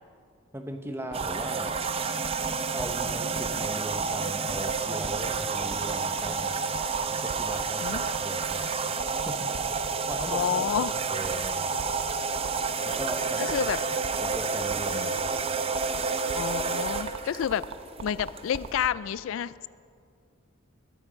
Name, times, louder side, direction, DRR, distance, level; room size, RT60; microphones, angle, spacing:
voice 1, 0.5-1.8 2.7-6.6 7.1-8.7 9.3-11.6 12.8-13.6 14.2-15.1, right 1 dB, 10° right, 5 dB, 1.0 m, -38 dB
sound 1, 1.1-18.9, right 5 dB, 25° right, 0.5 m, -30 dB
sound 2, 1.1-18.9, right 4 dB, 90° right, 0.8 m, -37 dB
voice 2, 10.2-10.9 13.4-13.8 14.9-15.1 16.3-17.6 18.0-19.7, left 9 dB, 75° left, 18 dB, 0.3 m, -29 dB
21.5 x 9.7 x 5.1 m, 2.3 s
head